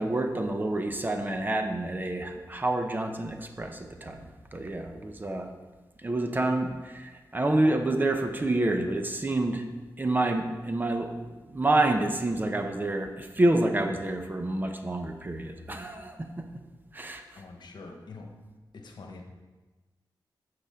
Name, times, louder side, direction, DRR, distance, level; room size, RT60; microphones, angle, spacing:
voice 1, 0.0-4.2 4.5-5.5 6.0-9.6 10.0-16.5 16.9-17.4, right 2 dB, 25° right, 5 dB, 0.8 m, -28 dB
voice 2, 17.3-18.3 18.7-19.2, left 3 dB, 70° left, 3 dB, 1.2 m, -44 dB
9.9 x 6.8 x 3.7 m, 1.2 s
wide cardioid pair, 105°, 8 cm